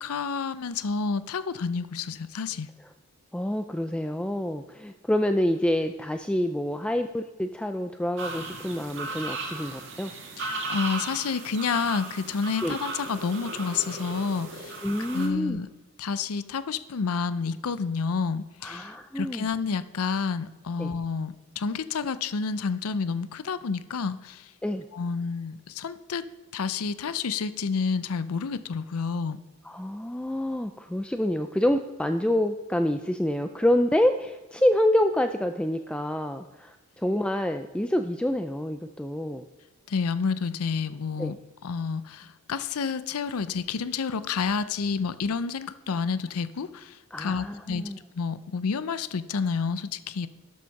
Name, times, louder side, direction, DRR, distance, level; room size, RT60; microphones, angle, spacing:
voice 1, 0.0-2.7 10.4-14.8 15.1-15.7 16.0-24.5 24.9-26.2 26.5-29.4 39.9-41.4 41.6-50.3, left 5 dB, 85° left, 14 dB, 0.5 m, -29 dB
voice 2, 3.3-10.1 12.6-12.8 14.8-15.6 18.6-19.5 20.8-20.9 24.6-24.8 29.6-39.5 41.2-41.4 47.1-48.0, left 1 dB, 5° left, 7 dB, 0.3 m, -27 dB
sound 1, 8.2-15.3, right 3 dB, 55° right, 1.9 m, -36 dB
12.5 x 6.2 x 5.8 m, 1.2 s
head